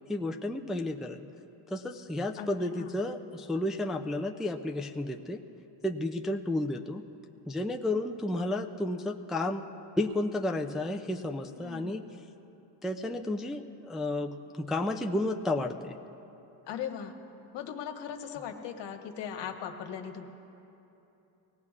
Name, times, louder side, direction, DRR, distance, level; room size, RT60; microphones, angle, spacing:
voice 1, 0.1-1.2 1.7-5.4 5.8-7.0 7.5-12.0 12.8-16.0, left 1 dB, ahead, 3 dB, 0.3 m, -32 dB
voice 2, 11.6-12.0 16.7-17.1 17.5-20.2, left 8 dB, 80° left, 3 dB, 1.4 m, -39 dB
23.5 x 18.0 x 2.4 m, 2.9 s
cardioid pair, 140°, 42 cm